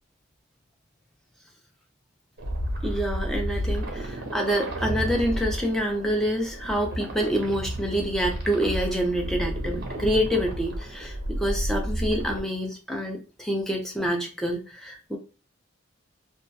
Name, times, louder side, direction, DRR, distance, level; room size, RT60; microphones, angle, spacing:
sound 1, 2.4-12.4, equal, 45° right, 0.6 m, -32 dB
voice 1, 2.8-15.2, equal, ahead, 0 dB, 0.4 m, -27 dB
2.2 x 2.1 x 2.6 m, 0.35 s
head